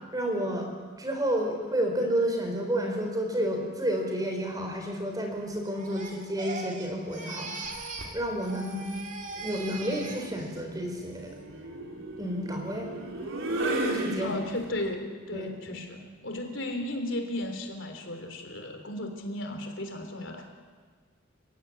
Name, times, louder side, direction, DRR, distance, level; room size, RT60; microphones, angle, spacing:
voice 1, 0.1-0.7 1.0-7.7 8.1-8.9 9.3-11.3 12.2-12.9 13.9-14.3 15.3-15.9, right 1 dB, 20° right, 3 dB, 4.3 m, -30 dB
Crying sobbing, 5.6-8.2 8.4-10.6 11.0-11.4, right 3 dB, 35° right, 2.8 m, -40 dB
sound 1, 7.7-8.2 9.6-14.8, right 1 dB, 75° right, 4.2 m, -34 dB
voice 2, 14.2-16.0 16.2-20.5, left 1 dB, 65° left, 5 dB, 3.6 m, -35 dB
29.5 x 16.0 x 9.9 m, 1.5 s
head